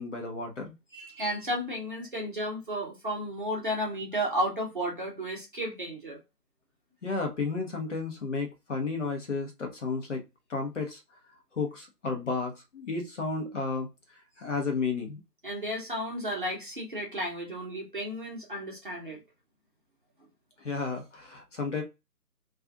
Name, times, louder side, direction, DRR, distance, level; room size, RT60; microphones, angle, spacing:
voice 1, 0.0-0.7 7.0-10.2 10.5-11.0 11.5-13.9 14.4-15.2 20.6-21.8, left 4 dB, 50° left, 0.8 m, -32 dB
voice 2, 0.9-6.2 15.4-19.2, equal, 35° right, 0.7 m, -33 dB
2.4 x 2.3 x 3.8 m
figure-of-eight pair, 160°, 48 cm